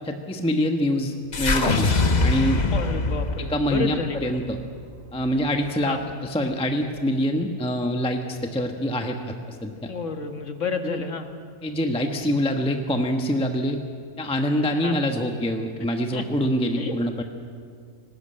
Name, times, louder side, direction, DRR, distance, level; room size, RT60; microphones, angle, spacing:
voice 1, 0.0-1.9 2.2-2.7 3.4-4.6 5.1-9.9 10.8-11.0 11.6-13.8 14.2-17.2, equal, 5° left, 4 dB, 1.0 m, -25 dB
sound 1, 1.3-5.6, left 3 dB, 30° left, 1.1 m, -24 dB
voice 2, 2.7-4.4 5.8-6.0 9.9-11.3 14.7-15.0 16.1-16.2 16.8-17.0, left 4 dB, 55° left, 6 dB, 1.8 m, -30 dB
19.0 x 18.0 x 8.9 m, 2.1 s
omnidirectional pair, 1.6 m